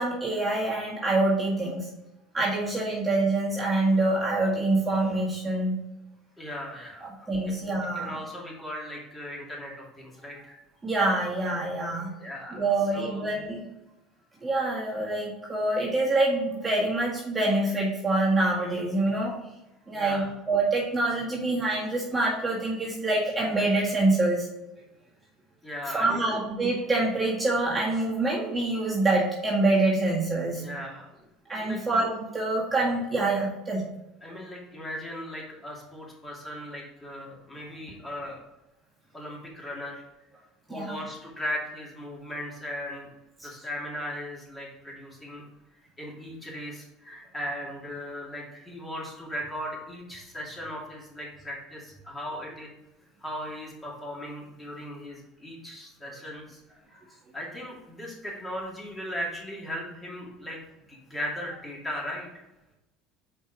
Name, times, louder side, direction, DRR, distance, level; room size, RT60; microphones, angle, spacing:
voice 1, 0.0-1.9 2.3-5.8 7.0-8.2 10.8-12.1 12.5-13.6 14.4-19.4 19.9-24.5 25.9-30.6 31.5-33.8 40.7-41.0 43.4-43.5, right 2 dB, 15° right, -6 dB, 1.8 m, -26 dB
voice 2, 6.4-7.5 7.9-10.6 12.2-12.6 12.9-13.3 19.9-20.3 25.6-26.4 30.6-31.2 31.6-31.8 34.2-38.4 39.1-40.0 40.7-43.1 43.4-45.4 46.0-52.7 53.2-56.8 57.3-60.6 60.9-62.4, equal, 15° left, -3 dB, 2.5 m, -37 dB
5.4 x 4.5 x 4.9 m, 0.94 s
supercardioid pair, 105°, 0 cm